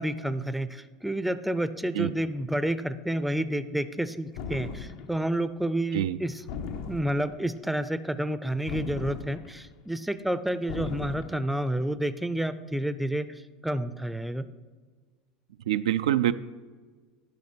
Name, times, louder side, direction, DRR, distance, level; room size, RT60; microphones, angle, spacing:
voice 1, 0.0-6.4 6.9-14.5, right 1 dB, 5° right, 12 dB, 0.5 m, -30 dB
sound 1, 4.4-5.2 6.5-7.4 8.7-9.7 10.7-11.5, left 5 dB, 75° left, 0.8 m, -37 dB
voice 2, 15.7-16.3, right 12 dB, 90° right, 11 dB, 0.3 m, -25 dB
10.5 x 5.8 x 4.4 m, 1.5 s
supercardioid pair, 105°, 3 cm